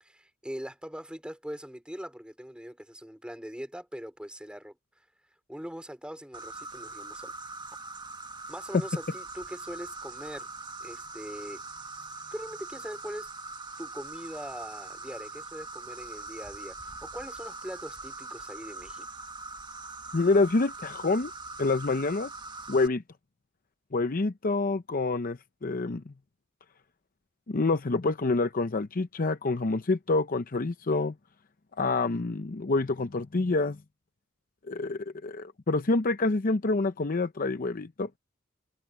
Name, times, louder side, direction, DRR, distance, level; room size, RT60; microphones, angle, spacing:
voice 1, 0.0-4.8 5.5-7.3 8.5-10.5 10.8-11.6 12.3-13.3 13.8-19.1, equal, 5° right, 4.5 m, -41 dB
Insect, 6.3-22.9, right 3 dB, 20° right, 1.4 m, -42 dB
voice 2, 20.1-21.3 21.6-22.3 22.7-23.0 23.9-26.1 27.5-31.1 31.8-33.8 34.7-38.1, left 3 dB, 45° left, 0.7 m, -27 dB
head